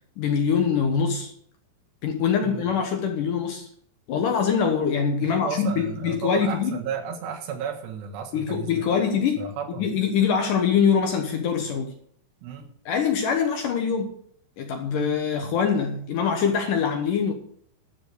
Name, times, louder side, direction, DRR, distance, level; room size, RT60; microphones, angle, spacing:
voice 1, 0.2-1.3 2.0-3.7 4.1-6.8 8.3-9.5 9.8-11.9 12.9-14.1 14.6-17.3, left 6 dB, 65° left, 4 dB, 2.2 m, -24 dB
voice 2, 5.2-8.9 9.4-9.9 12.4-12.7, right 7 dB, 80° right, 3 dB, 3.6 m, -33 dB
12.0 x 6.8 x 6.7 m, 0.62 s
omnidirectional pair, 4.9 m